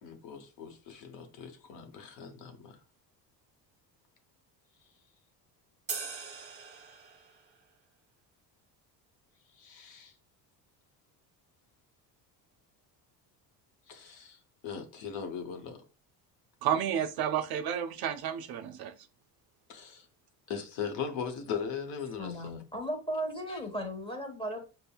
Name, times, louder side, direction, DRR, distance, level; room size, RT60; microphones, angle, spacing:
voice 1, 0.0-2.8 9.6-10.1 13.9-14.4 14.6-15.8 19.7-20.1 20.5-22.6 23.5-23.6, left 6 dB, 65° left, 0.8 m, -39 dB
sound 1, 5.9-7.5, right 5 dB, 25° right, 0.8 m, -40 dB
voice 2, 16.6-18.9, right 9 dB, 55° right, 0.5 m, -31 dB
voice 3, 22.2-24.7, equal, 10° left, 1.2 m, -36 dB
5.2 x 2.1 x 2.3 m
supercardioid pair, 75°, 47 cm